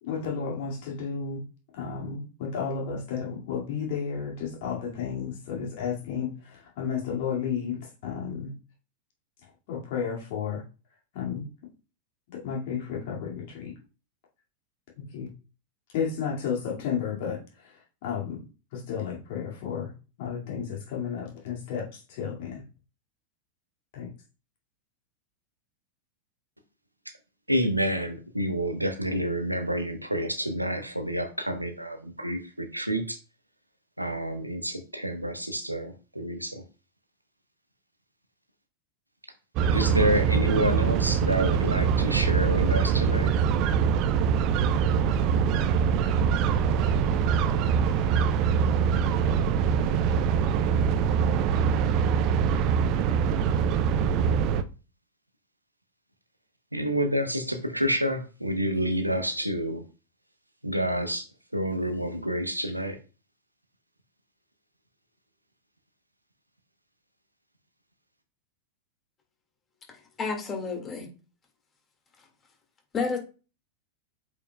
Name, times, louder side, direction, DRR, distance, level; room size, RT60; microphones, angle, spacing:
voice 1, 0.0-1.4 1.7-8.5 9.7-10.6 11.1-11.5 12.3-13.7 15.0-15.3 15.9-18.4 18.7-19.9 20.2-22.6 23.9-24.1, left 7 dB, 50° left, -2 dB, 2.3 m, -32 dB
voice 2, 27.5-33.2 34.0-36.6 39.7-43.3 56.7-59.8 60.6-61.2 61.5-63.0, equal, 85° right, 7 dB, 0.9 m, -28 dB
sound 1, 39.6-54.6, right 7 dB, 40° right, 0.5 m, -23 dB
voice 3, 70.2-71.1 72.9-73.2, left 4 dB, 25° left, 2 dB, 2.0 m, -30 dB
8.1 x 5.2 x 2.3 m, 0.34 s
figure-of-eight pair, 90°, 0 cm